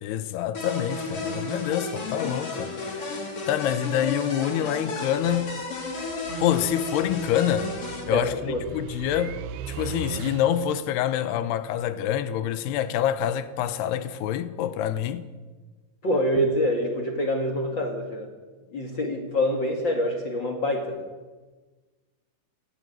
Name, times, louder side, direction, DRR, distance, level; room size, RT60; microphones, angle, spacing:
voice 1, 0.0-3.2 3.5-5.6 6.4-7.7 8.1-9.4 9.7-15.3, left 10 dB, 75° left, 2.5 m, -26 dB
sound 1, 0.5-8.0, left 3 dB, 35° left, 3.4 m, -33 dB
sound 2, 5.2-10.8, right 8 dB, 80° right, 2.3 m, -39 dB
voice 2, 8.1-8.6 16.0-18.3 18.7-20.9, left 1 dB, 60° left, 1.1 m, -26 dB
19.5 x 15.5 x 9.4 m
omnidirectional pair, 5.8 m